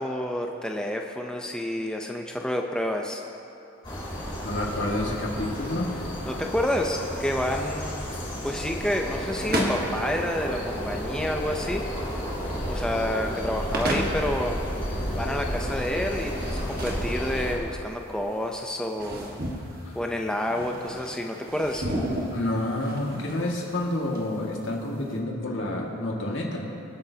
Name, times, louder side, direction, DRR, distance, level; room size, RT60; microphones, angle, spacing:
voice 1, 0.0-3.2 6.3-8.1 8.4-11.9 12.7-14.6 15.1-19.4 19.9-21.9, left 1 dB, 5° left, 2 dB, 0.5 m, -29 dB
sound 1, 3.8-17.5, equal, 25° left, 3.2 m, -32 dB
voice 2, 4.4-5.9 22.3-26.7, left 1 dB, 55° left, -2 dB, 1.9 m, -29 dB
sound 2, 6.0-25.2, right 1 dB, 45° right, 1.5 m, -35 dB
25.0 x 9.0 x 2.8 m, 2.8 s
head